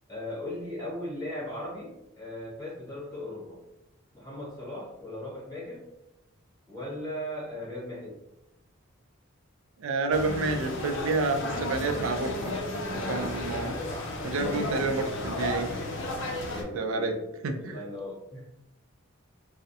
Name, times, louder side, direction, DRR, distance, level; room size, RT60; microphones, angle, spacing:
voice 1, 0.1-3.6 4.1-5.8 6.7-8.1 13.2-13.4 13.8-14.1 14.6-14.9 16.5-17.2 17.6-18.4, left 1 dB, 15° left, -9 dB, 1.0 m, -38 dB
voice 2, 9.8-12.5 12.9-13.8 14.2-15.7 16.7-17.2 17.4-17.8, right 3 dB, 70° right, 6 dB, 0.3 m, -29 dB
sound 1, 10.1-16.6, left 2 dB, 60° left, 0.4 m, -33 dB
2.3 x 2.0 x 2.7 m, 0.91 s
head